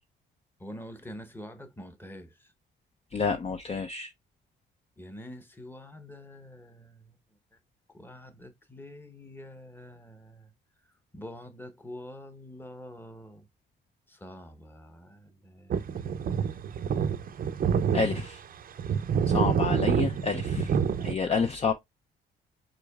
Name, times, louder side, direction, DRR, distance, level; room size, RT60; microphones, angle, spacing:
voice 1, 0.6-2.5 5.0-7.2 7.9-10.5 11.1-13.5 14.1-16.4 21.2-21.5, left 1 dB, 10° left, 1.0 m, -46 dB
voice 2, 3.1-4.1 17.9-18.4 19.3-21.7, left 5 dB, 30° left, 0.5 m, -29 dB
sound 1, 15.7-18.3 18.8-21.1, right 7 dB, 45° right, 0.5 m, -27 dB
5.0 x 4.3 x 2.3 m
cardioid pair, 90°, 20 cm